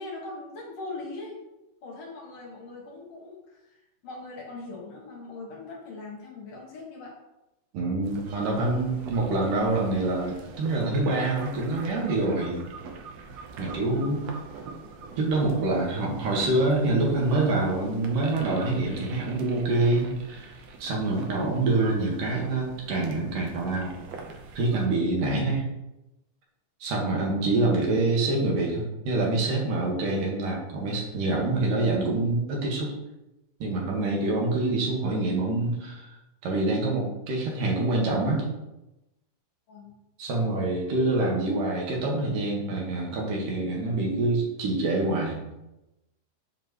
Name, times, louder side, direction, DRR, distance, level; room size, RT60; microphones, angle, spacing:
voice 1, 0.0-1.4 1.8-7.1 8.3-8.9 13.8-14.2 27.6-27.9 39.7-40.0, left 3 dB, 55° left, -3 dB, 2.6 m, -41 dB
voice 2, 7.7-12.6 13.6-14.2 15.2-20.5 20.8-24.0 24.5-25.7 26.8-32.9 33.6-36.1 36.4-38.5 40.2-45.4, right 2 dB, 90° right, -2 dB, 3.3 m, -26 dB
sound 1, 8.0-24.9, right 4 dB, 65° right, 1.8 m, -44 dB
7.5 x 7.4 x 3.1 m, 0.94 s
omnidirectional pair, 3.7 m